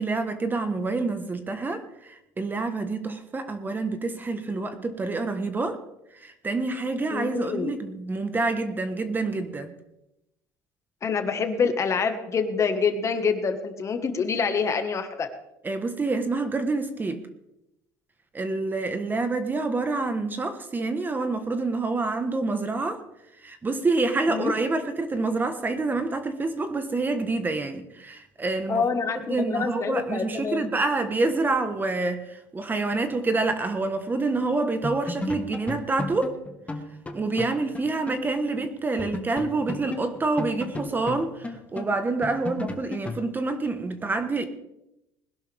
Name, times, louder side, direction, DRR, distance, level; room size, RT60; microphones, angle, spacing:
voice 1, 0.0-5.8 6.1-9.7 15.6-17.2 18.3-23.0 23.4-28.8 29.1-36.3 37.1-44.5, right 3 dB, 20° right, 8 dB, 1.3 m, -27 dB
voice 2, 7.1-7.7 11.0-15.3 24.3-24.5 28.7-30.7, left 5 dB, 35° left, 7 dB, 1.6 m, -26 dB
sound 1, 34.4-34.6 34.8-38.3 38.5-38.6 39.0-43.3, left 2 dB, 15° left, 1.4 m, -35 dB
20.5 x 11.5 x 3.5 m, 0.86 s
supercardioid pair, 110°, 9 cm